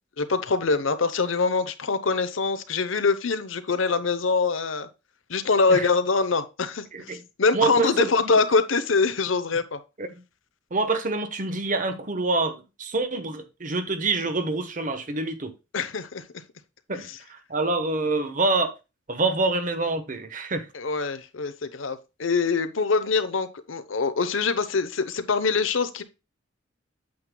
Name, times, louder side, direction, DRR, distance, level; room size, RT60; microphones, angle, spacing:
voice 1, 0.2-4.9 5.3-9.8 15.7-16.2 16.9-17.1 20.7-26.0, left 4 dB, 85° left, 0.9 m, -24 dB
voice 2, 6.9-7.2 7.5-8.4 10.0-10.2 10.7-15.5 16.9-18.7 19.1-20.7, right 3 dB, 40° right, 1.1 m, -26 dB
8.6 x 7.8 x 2.2 m
head